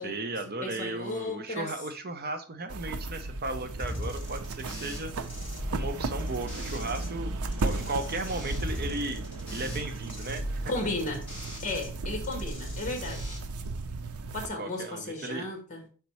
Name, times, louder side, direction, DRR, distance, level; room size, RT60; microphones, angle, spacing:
voice 1, 0.0-5.1 5.7-9.2 9.5-10.7 14.6-15.5, right 2 dB, 45° right, 0.6 m, -35 dB
voice 2, 0.6-1.7 10.7-11.3 11.6-13.4 14.3-15.8, left 2 dB, 35° left, 1.7 m, -34 dB
sound 1, 2.7-14.5, right 2 dB, 80° right, 0.6 m, -35 dB
sound 2, 3.8-7.1 7.4-11.9 12.2-13.4, equal, 5° left, 2.8 m, -40 dB
5.8 x 4.1 x 4.2 m
head